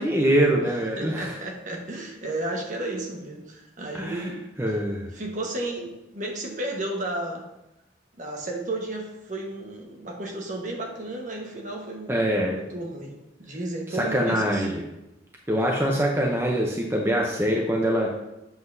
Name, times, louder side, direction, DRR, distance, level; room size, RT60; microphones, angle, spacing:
voice 1, 0.0-1.4 3.9-4.3 4.6-5.1 12.1-12.6 14.0-14.9 15.5-18.2, equal, 15° right, -1 dB, 0.6 m, -24 dB
voice 2, 1.0-4.4 5.1-7.5 8.2-14.7, right 2 dB, 45° right, 1 dB, 1.2 m, -33 dB
7.9 x 7.4 x 2.6 m, 0.90 s
head